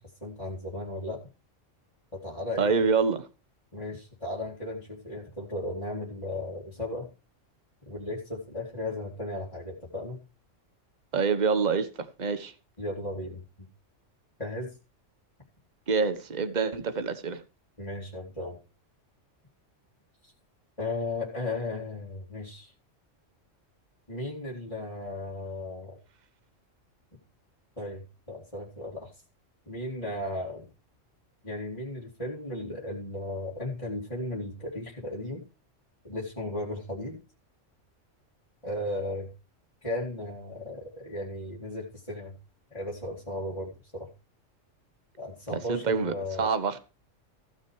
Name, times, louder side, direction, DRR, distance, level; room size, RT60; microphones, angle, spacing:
voice 1, 0.2-1.2 2.1-2.9 3.7-7.1 7.9-10.2 12.8-13.4 14.4-14.7 17.8-18.6 20.2-20.3 20.8-22.7 24.1-26.0 27.8-29.1 29.7-30.7 31.4-35.4 36.0-37.2 38.6-39.3 39.8-42.3 42.7-44.1 45.2-46.5, left 1 dB, 25° left, 2.7 m, -35 dB
voice 2, 2.6-3.2 11.1-11.9 12.2-12.5 15.9-17.4 45.5-46.8, right 5 dB, 35° right, 1.2 m, -26 dB
15.5 x 6.5 x 4.7 m
omnidirectional pair, 1.3 m